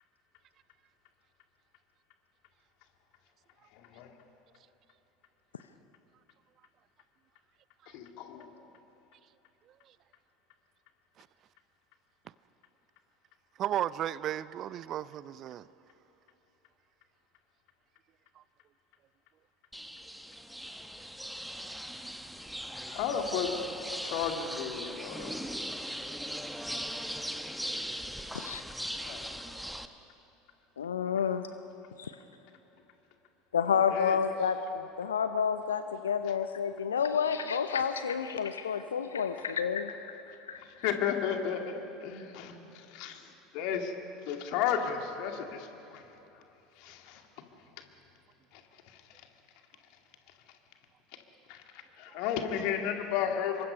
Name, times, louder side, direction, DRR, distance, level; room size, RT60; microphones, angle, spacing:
voice 1, 3.7-4.1 7.9-8.5 22.9-23.5 24.0-25.4 29.0-29.4 31.2-31.3 33.9-34.2 40.6-43.2 43.5-43.9 44.3-46.0 46.3-46.4 46.8-47.2 48.5-49.0 51.5-53.7, left 8 dB, 55° left, 2.3 m, -34 dB
voice 2, 13.6-15.7 18.4-18.5 52.1-52.2, right 11 dB, 45° right, 0.6 m, -34 dB
sound 1, 19.7-29.9, equal, ahead, 1.2 m, -39 dB
voice 3, 30.8-31.5 32.0-32.1 33.5-40.6, left 7 dB, 75° left, 0.7 m, -30 dB
27.0 x 23.5 x 5.5 m
figure-of-eight pair, 70°, 0 cm